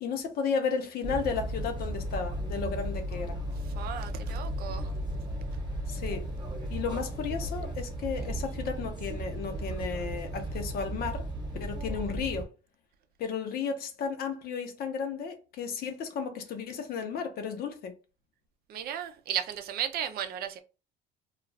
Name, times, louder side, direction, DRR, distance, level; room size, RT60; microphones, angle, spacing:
voice 1, 0.0-3.4 5.9-6.2 6.7-11.3 11.6-12.5 13.2-17.9, left 6 dB, 55° left, 0.7 m, -33 dB
sound 1, 1.0-12.4, right 1 dB, 25° right, 1.0 m, -35 dB
voice 2, 3.8-4.9 18.7-20.6, right 9 dB, 55° right, 0.5 m, -34 dB
2.4 x 2.3 x 3.2 m
supercardioid pair, 100°, 18 cm